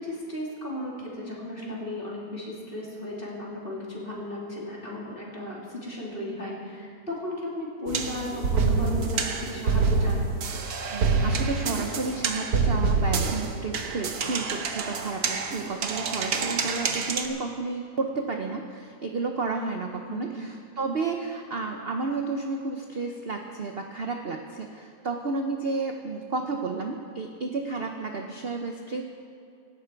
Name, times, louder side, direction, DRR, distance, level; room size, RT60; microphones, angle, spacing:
voice 1, 0.0-10.3 20.1-20.3, left 1 dB, 30° left, -4 dB, 3.4 m, -35 dB
sound 1, 7.9-17.3, right 4 dB, 65° right, 1.5 m, -27 dB
voice 2, 10.9-29.0, right 3 dB, 45° right, 3 dB, 0.9 m, -32 dB
17.5 x 14.0 x 4.6 m, 2.5 s
omnidirectional pair, 1.8 m